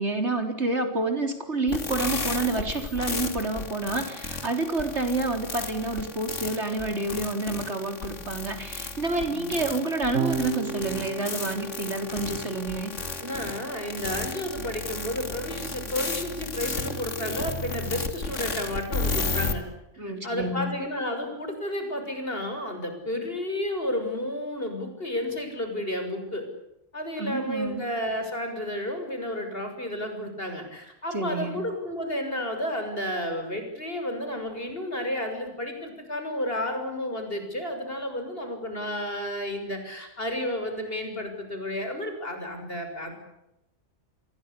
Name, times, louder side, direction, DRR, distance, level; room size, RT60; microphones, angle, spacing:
voice 1, 0.0-12.9 20.0-20.7 27.2-27.8 31.1-31.6, right 2 dB, 65° right, 6 dB, 4.3 m, -29 dB
sound 1, 1.7-19.5, left 3 dB, 85° left, 2.9 m, -33 dB
voice 2, 9.2-9.7 13.2-19.6 20.2-26.5 26.9-43.1, left 1 dB, 50° left, 6 dB, 7.1 m, -32 dB
Electric guitar / Bass guitar, 10.1-16.5, right 5 dB, 85° right, 1.8 m, -36 dB
28.0 x 22.5 x 8.5 m, 0.86 s
omnidirectional pair, 1.2 m